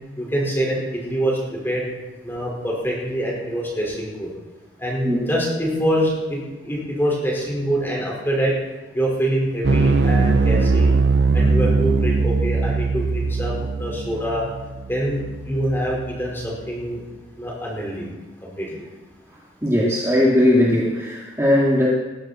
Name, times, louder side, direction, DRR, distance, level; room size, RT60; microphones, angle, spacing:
voice 1, 0.2-1.8 2.2-4.3 4.8-8.5 8.9-10.9 11.3-14.4 14.9-17.0 17.4-18.1 18.4-18.7, equal, 15° left, -3 dB, 4.9 m, -25 dB
sound 1, 9.6-16.1, right 3 dB, 70° right, 0.6 m, -20 dB
voice 2, 19.6-21.9, left 1 dB, 15° right, -6 dB, 2.3 m, -18 dB
20.0 x 15.0 x 4.4 m, 1.2 s
head